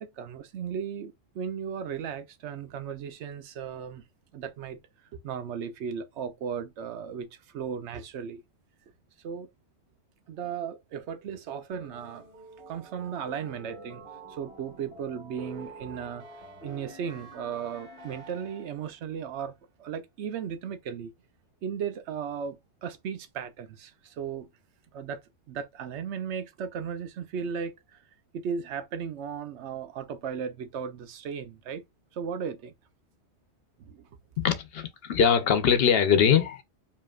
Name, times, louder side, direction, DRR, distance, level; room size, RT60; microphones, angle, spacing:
voice 1, 0.0-4.0 4.3-4.8 5.1-8.4 9.2-9.5 10.3-12.3 12.7-14.0 14.3-16.2 16.6-19.5 19.8-21.1 21.6-24.5 24.9-25.2 25.5-28.0 28.3-31.8 32.1-32.7 33.8-34.0, right 7 dB, 85° right, 0.9 m, -36 dB
sound 1, 11.7-19.0, right 1 dB, 55° right, 1.9 m, -47 dB
voice 2, 34.4-36.6, left 7 dB, 65° left, 0.8 m, -22 dB
5.0 x 2.8 x 2.3 m
omnidirectional pair, 1.1 m